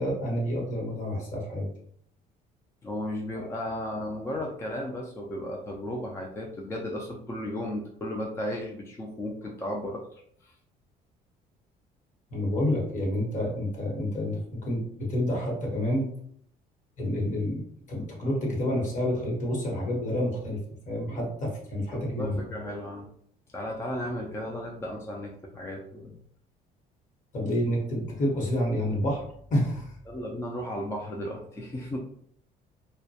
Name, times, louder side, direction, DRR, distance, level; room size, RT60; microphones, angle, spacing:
voice 1, 0.0-1.7 3.3-3.5 12.3-16.1 17.0-17.6 17.9-20.6 20.9-22.3 27.3-29.2 29.5-29.9, left 1 dB, 45° left, -2 dB, 1.0 m, -29 dB
voice 2, 2.8-10.6 21.9-23.1 23.5-26.2 30.1-32.0, left 1 dB, 15° left, -1 dB, 0.3 m, -35 dB
2.2 x 2.1 x 2.7 m, 0.66 s
cardioid pair, 110°, 17 cm